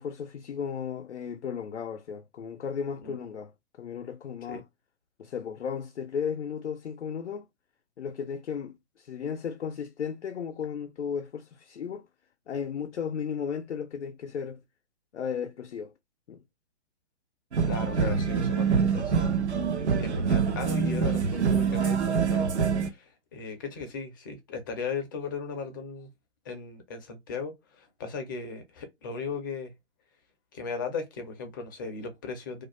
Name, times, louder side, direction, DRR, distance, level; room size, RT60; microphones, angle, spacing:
voice 1, 0.0-4.6 5.2-7.5 8.0-12.1 12.5-14.6 15.1-15.9 16.3-16.4 17.6-17.7, left 7 dB, 80° left, 0.5 m, -35 dB
sound 1, 17.5-22.9, right 6 dB, 75° right, 0.7 m, -25 dB
voice 2, 17.7-19.3 20.0-26.1 26.5-29.7 30.5-32.6, left 5 dB, 20° left, 0.4 m, -37 dB
2.4 x 2.2 x 2.9 m
figure-of-eight pair, 125°, 34 cm